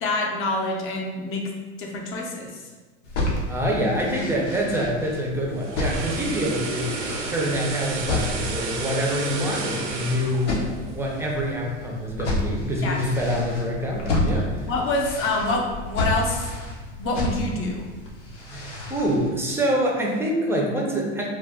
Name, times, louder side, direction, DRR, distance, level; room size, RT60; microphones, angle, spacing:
voice 1, 0.0-1.5 1.8-2.7 12.8-13.0 14.1-16.5 17.0-17.9, left 2 dB, 35° left, 0 dB, 0.7 m, -27 dB
sound 1, 3.0-19.3, left 1 dB, 90° left, 0.8 m, -31 dB
voice 2, 3.5-7.0 7.3-10.6 10.9-14.5 18.5-21.3, equal, 5° right, -2 dB, 0.5 m, -26 dB
sound 2, 5.4-11.6 11.9-12.1, right 3 dB, 85° right, 0.6 m, -32 dB
2.4 x 2.3 x 3.4 m, 1.3 s
hypercardioid pair, 100°, 35 cm